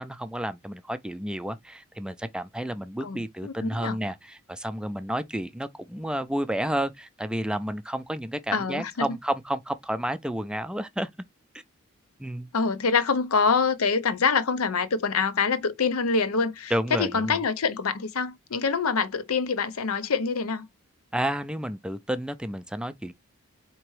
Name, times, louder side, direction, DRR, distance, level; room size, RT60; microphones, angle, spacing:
voice 1, 0.0-11.1 12.2-12.5 16.7-17.4 21.1-23.1, right 1 dB, 5° right, 0.4 m, -31 dB
voice 2, 3.0-4.0 8.5-9.1 12.5-20.6, left 5 dB, 80° left, 0.6 m, -25 dB
4.5 x 2.9 x 3.1 m
head